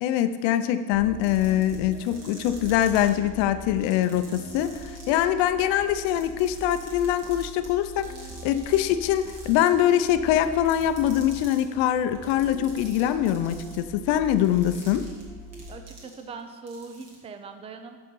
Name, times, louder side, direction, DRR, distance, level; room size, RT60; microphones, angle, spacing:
voice 1, 0.0-8.1 8.4-15.1, left 11 dB, 90° left, 11 dB, 0.6 m, -23 dB
sound 1, 0.9-16.1, equal, 5° left, 0.9 m, -42 dB
sound 2, 1.1-3.1 3.8-5.2 5.8-8.8 9.1-10.1 10.4-11.6 12.1-16.4 16.7-17.1, right 2 dB, 35° right, 1.8 m, -48 dB
voice 2, 15.7-18.0, right 4 dB, 15° right, 7 dB, 0.3 m, -41 dB
6.5 x 5.1 x 5.4 m, 1.5 s
cardioid pair, 140°, 44 cm